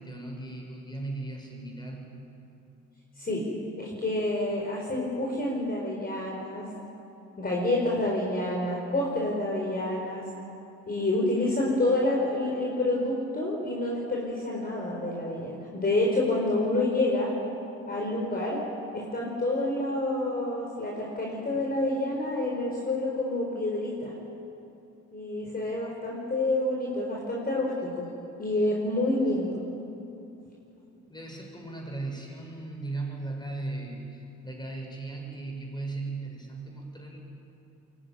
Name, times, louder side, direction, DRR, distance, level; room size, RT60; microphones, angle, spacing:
voice 1, 0.0-2.1 31.1-37.2, right 2 dB, 15° left, 0 dB, 6.7 m, -37 dB
voice 2, 3.8-6.6 7.4-10.2 10.9-17.3 17.9-18.6 18.9-24.1 25.1-28.1 28.4-29.6, left 2 dB, 30° left, -2 dB, 4.6 m, -28 dB
22.5 x 18.0 x 9.5 m, 2.8 s
cardioid pair, 90°, 30 cm